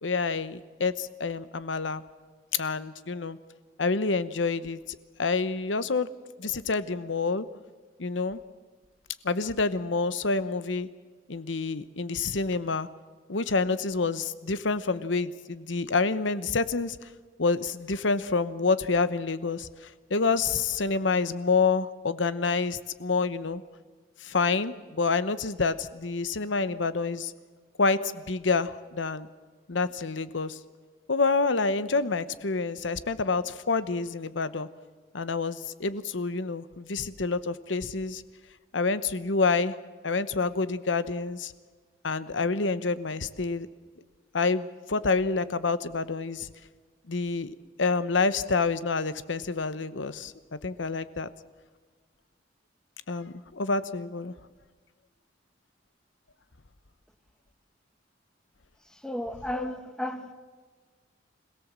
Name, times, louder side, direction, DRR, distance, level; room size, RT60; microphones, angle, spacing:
voice 1, 0.0-2.0 2.5-3.4 3.8-6.1 6.4-7.5 8.0-8.4 9.2-10.9 11.3-12.9 13.3-17.0 17.4-23.6 24.2-27.3 27.8-29.3 29.7-30.6 31.1-34.7 35.1-38.2 38.7-39.8 40.0-41.5 42.0-43.7 44.3-46.5 47.1-51.3 53.1-54.3 59.5-59.7, left 4 dB, 85° left, 1.0 m, -28 dB
voice 2, 59.0-60.3, left 1 dB, 5° left, 1.3 m, -33 dB
26.0 x 17.0 x 7.5 m
head